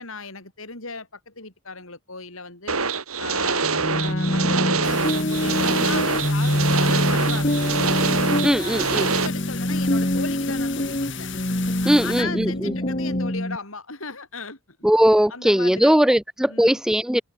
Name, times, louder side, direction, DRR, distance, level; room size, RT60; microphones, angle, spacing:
voice 1, 0.0-2.8 3.2-7.8 8.5-11.3 11.8-14.6 15.3-16.0 16.5-16.8, left 4 dB, 75° left, 7.6 m, -36 dB
sound 1, 2.7-9.3, right 5 dB, 90° right, 5.2 m, -25 dB
sound 2, 3.6-13.6, left 1 dB, 35° left, 2.5 m, -25 dB
sound 3, 4.8-12.2, left 10 dB, 60° left, 3.7 m, -37 dB
voice 2, 8.4-9.1 11.9-12.7 14.8-17.2, equal, 5° right, 0.4 m, -19 dB
head